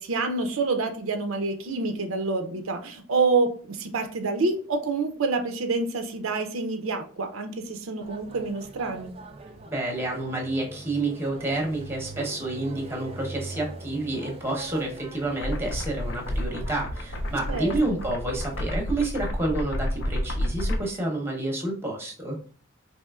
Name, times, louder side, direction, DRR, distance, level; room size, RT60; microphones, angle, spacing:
voice 1, 0.0-9.1 17.5-17.7, right 3 dB, 80° right, 6 dB, 0.5 m, -27 dB
sound 1, 8.0-18.8, right 2 dB, 25° right, 0.3 m, -43 dB
voice 2, 9.7-22.4, right 2 dB, 10° right, 0 dB, 0.8 m, -29 dB
sound 2, 15.4-20.8, equal, 60° left, 0.5 m, -30 dB
4.2 x 3.0 x 2.3 m, 0.43 s
head